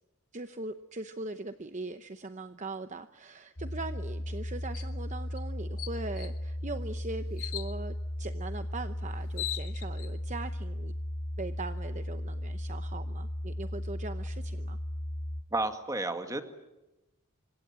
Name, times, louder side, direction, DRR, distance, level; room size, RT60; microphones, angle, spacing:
voice 1, 0.3-10.9 11.4-14.8, right 3 dB, 35° right, 10 dB, 0.8 m, -40 dB
sound 1, 3.6-15.4, left 1 dB, 40° left, 1.8 m, -36 dB
sound 2, 4.7-4.9 5.4-5.5 5.8-6.4 7.4-7.8 8.9-9.0 9.2-10.1, left 14 dB, 70° left, 1.2 m, -38 dB
voice 2, 15.5-16.4, right 2 dB, 15° right, 7 dB, 2.0 m, -31 dB
27.5 x 25.5 x 7.6 m, 0.99 s
head